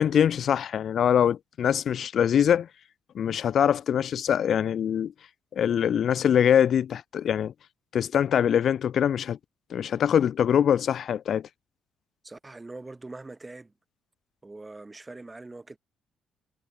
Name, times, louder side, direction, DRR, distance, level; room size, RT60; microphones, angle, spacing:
voice 1, 0.0-2.7 3.2-5.1 5.5-7.5 7.9-9.4 9.7-11.5, left 9 dB, 60° left, 0.4 m, -23 dB
voice 2, 12.2-13.7 14.4-15.8, right 2 dB, 20° right, 6.1 m, -43 dB
cardioid pair, 90°, 0 cm